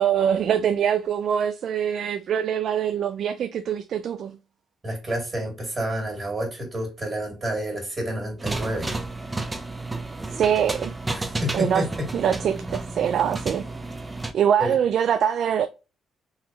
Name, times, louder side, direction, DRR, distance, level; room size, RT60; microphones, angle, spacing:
voice 1, 0.0-4.4 10.3-10.9 11.5-11.9 12.1-13.6 14.3-15.7, right 8 dB, 65° right, 0.3 m, -23 dB
voice 2, 4.8-8.9 11.1-12.1 14.6-14.7, right 1 dB, 30° right, 2.3 m, -29 dB
sound 1, 8.4-14.3, right 2 dB, 15° right, 0.6 m, -32 dB
3.9 x 2.9 x 2.8 m
cardioid pair, 90°, 0 cm